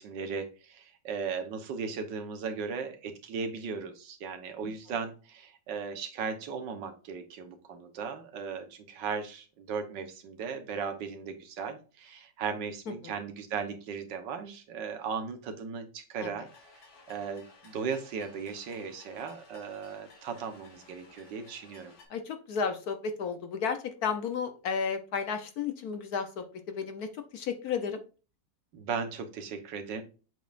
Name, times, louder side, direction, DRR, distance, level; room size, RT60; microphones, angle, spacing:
voice 1, 0.0-16.5 17.1-21.9 28.7-30.0, right 5 dB, 75° right, 7 dB, 1.6 m, -37 dB
sound 1, 16.4-22.0, left 3 dB, 90° left, 2.4 m, -56 dB
voice 2, 22.1-28.0, left 6 dB, 65° left, 8 dB, 1.1 m, -33 dB
7.7 x 5.2 x 2.5 m, 0.34 s
omnidirectional pair, 2.0 m